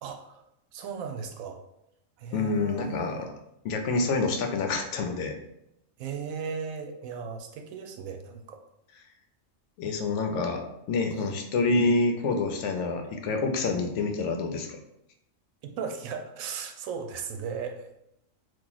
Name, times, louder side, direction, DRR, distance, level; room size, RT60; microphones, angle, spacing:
voice 1, 0.0-0.4 0.7-1.6 2.2-3.3 6.0-8.6 11.2-11.3 15.6-18.0, right 6 dB, 90° right, 5 dB, 1.0 m, -37 dB
voice 2, 2.3-3.3 3.6-5.3 9.8-10.6 10.9-14.8, left 3 dB, 70° left, 4 dB, 0.8 m, -27 dB
2.9 x 2.5 x 3.8 m, 0.79 s
omnidirectional pair, 1.4 m